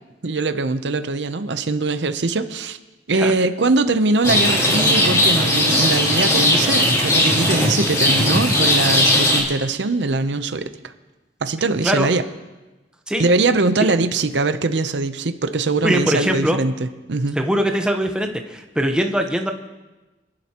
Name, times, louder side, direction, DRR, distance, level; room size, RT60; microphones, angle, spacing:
voice 1, 0.2-2.8 3.1-10.7 11.4-12.2 13.2-17.4, right 3 dB, 80° right, 10 dB, 0.7 m, -21 dB
Rain, 4.2-9.4, left 1 dB, 20° left, 3.0 m, -17 dB
voice 2, 15.8-16.6 17.3-19.5, equal, 5° right, 3 dB, 1.0 m, -21 dB
26.0 x 11.5 x 3.0 m, 1.1 s
head